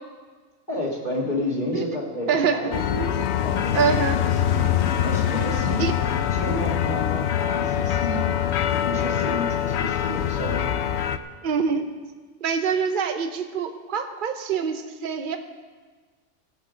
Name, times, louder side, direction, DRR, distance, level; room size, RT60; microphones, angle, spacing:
voice 1, 0.7-4.4 5.0-5.9 6.3-8.3 8.7-10.7, left 1 dB, 40° left, -6 dB, 1.8 m, -30 dB
voice 2, 2.3-2.6 3.7-4.2 5.8-5.9 11.4-11.8 12.4-15.4, right 6 dB, 45° right, 7 dB, 0.9 m, -24 dB
sound 1, 2.7-11.2, left 10 dB, 70° left, 0.8 m, -24 dB
17.5 x 7.9 x 5.1 m, 1.4 s
omnidirectional pair, 1.2 m